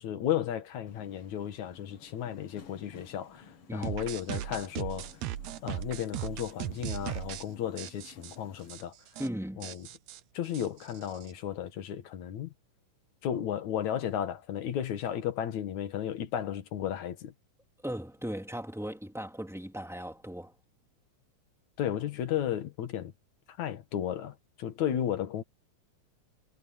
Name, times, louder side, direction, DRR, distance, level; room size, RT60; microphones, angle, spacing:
voice 1, 0.0-5.1 5.6-8.9 9.6-9.9 10.3-12.5 13.2-17.3 21.8-23.1 23.5-25.4, left 10 dB, 70° left, 2.9 m, -34 dB
Subway metro underground, 0.9-8.8, left 6 dB, 50° left, 2.5 m, -55 dB
sound 1, 3.8-7.5 7.8-8.4 8.7-8.8 9.1-9.3 9.6-11.3, right 13 dB, 70° right, 2.0 m, -38 dB
voice 2, 9.2-9.7 17.8-20.5, equal, ahead, 2.8 m, -37 dB
omnidirectional pair, 3.5 m